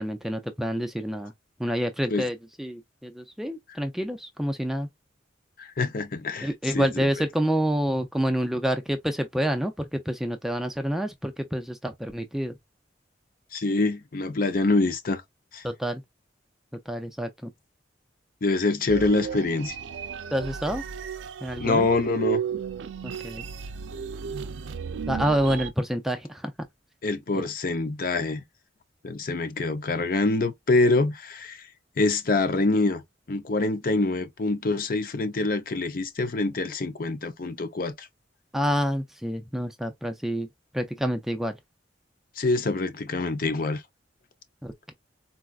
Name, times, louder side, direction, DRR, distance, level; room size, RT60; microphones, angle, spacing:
voice 1, 0.0-1.3 1.6-4.9 6.4-12.6 15.6-16.0 16.9-17.5 20.3-20.8 21.4-21.9 23.0-23.4 25.1-26.5 27.3-27.4 38.5-40.5 40.7-41.6 44.6-44.9, equal, ahead, 0.3 m, -28 dB
voice 2, 5.6-6.5 6.7-6.9 13.5-15.2 15.5-15.6 18.4-19.8 21.6-22.4 27.0-28.4 29.0-31.6 32.0-33.0 33.3-38.1 42.4-43.8, left 3 dB, 50° left, 0.6 m, -25 dB
sound 1, 18.9-25.7, right 7 dB, 80° right, 0.4 m, -34 dB
4.0 x 2.3 x 2.3 m
head